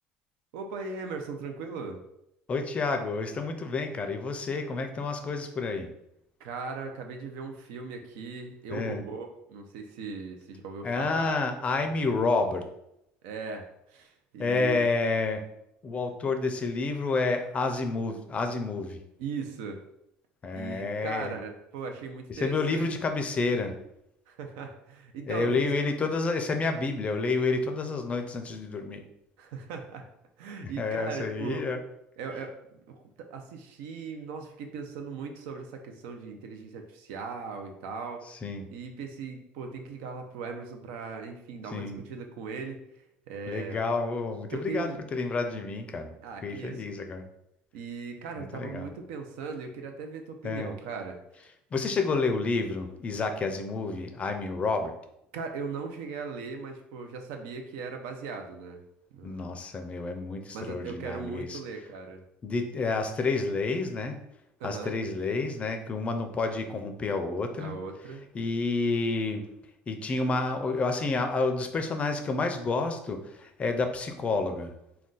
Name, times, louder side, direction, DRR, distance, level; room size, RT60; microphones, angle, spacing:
voice 1, 0.5-2.0 6.4-11.4 11.9-12.0 13.2-14.9 19.2-19.8 20.5-22.9 24.3-25.6 29.4-30.1 30.4-31.7 32.2-32.6 32.9-38.2 38.7-42.8 43.3-43.8 44.5-45.0 46.2-46.8 47.7-51.2 52.0-52.2 55.3-58.8 59.1-59.5 60.5-62.2 64.6-65.0 67.6-68.3, right 5 dB, 85° right, 5 dB, 0.5 m, -38 dB
voice 2, 2.5-5.9 8.7-9.0 10.8-12.6 14.4-15.4 15.8-19.0 20.4-21.4 22.3-23.8 25.3-29.0 30.6-31.8 38.3-38.6 41.7-42.0 43.5-46.1 46.4-47.2 48.4-48.9 50.4-50.7 51.7-54.9 59.2-61.6 62.4-64.2 64.6-67.7 68.3-69.4 69.9-74.7, left 3 dB, 30° left, 6 dB, 0.4 m, -29 dB
2.4 x 2.2 x 3.7 m, 0.80 s
supercardioid pair, 110°, 4 cm